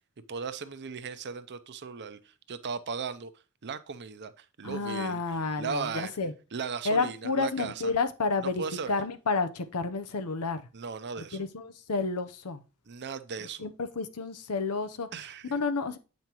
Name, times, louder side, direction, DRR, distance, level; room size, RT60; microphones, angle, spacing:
voice 1, 0.3-2.2 2.5-3.3 3.6-5.2 5.6-6.2 6.5-7.9 8.4-8.9 10.7-11.4 12.9-13.7 15.1-15.5, right 5 dB, 50° right, 0.6 m, -37 dB
voice 2, 4.6-6.3 6.8-10.6 11.3-12.6 13.6-15.1 15.5-16.0, left 4 dB, 90° left, 0.8 m, -30 dB
8.5 x 5.3 x 3.0 m
head